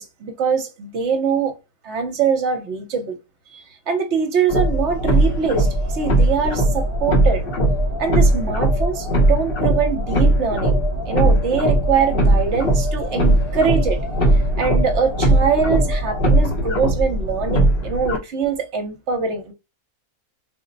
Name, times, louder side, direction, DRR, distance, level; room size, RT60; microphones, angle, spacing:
voice 1, 0.0-1.5 1.8-3.2 3.5-7.4 8.0-10.7 11.1-19.5, right 6 dB, 55° right, 1.0 m, -23 dB
sound 1, 4.5-18.2, right 1 dB, 45° left, 0.9 m, -19 dB
3.9 x 2.1 x 3.9 m
omnidirectional pair, 1.6 m